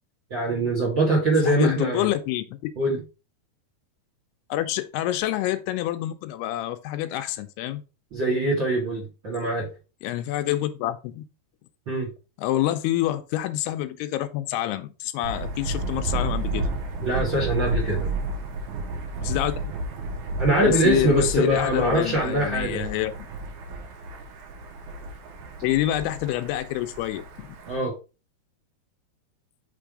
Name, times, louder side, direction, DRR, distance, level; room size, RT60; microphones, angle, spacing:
voice 1, 0.3-2.1 2.8-3.0 8.1-9.7 11.9-12.1 17.0-18.1 20.4-22.8 27.7-28.0, right 2 dB, 50° right, 1.4 m, -23 dB
voice 2, 1.4-2.7 4.5-7.8 10.0-11.2 12.4-16.7 19.2-19.5 20.6-23.1 25.6-27.5, left 14 dB, 85° left, 2.6 m, -27 dB
Thunder, 15.2-27.8, right 2 dB, 70° right, 1.9 m, -31 dB
5.8 x 3.5 x 4.8 m
omnidirectional pair, 4.7 m